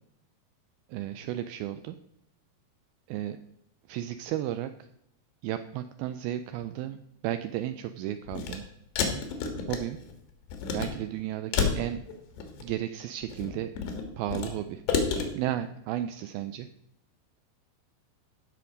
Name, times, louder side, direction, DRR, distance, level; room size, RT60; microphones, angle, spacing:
voice 1, 0.9-2.0 3.1-3.4 3.9-4.7 5.4-7.0 7.2-8.6 9.7-10.0 10.7-12.0 12.6-13.7 14.2-14.8 15.4-16.7, right 12 dB, 90° right, 10 dB, 2.1 m, -33 dB
sound 1, 8.3-8.6 9.0-10.1 10.5-10.9 11.5-12.7 13.2-14.5 14.9-15.3, left 6 dB, 85° left, 3.7 m, -29 dB
15.5 x 6.0 x 5.1 m, 0.80 s
omnidirectional pair, 4.8 m